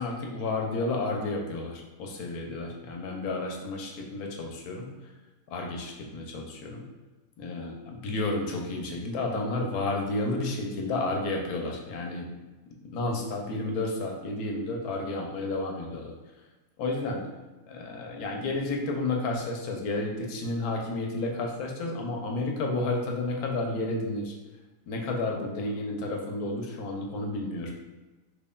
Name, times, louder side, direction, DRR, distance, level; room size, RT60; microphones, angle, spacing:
voice 1, 0.0-4.9 5.5-6.8 7.4-12.3 12.8-16.1 16.8-17.3 17.7-24.3 24.9-27.7, left 2 dB, 70° left, 1 dB, 1.0 m, -31 dB
4.2 x 3.2 x 2.2 m, 1.2 s
omnidirectional pair, 1.8 m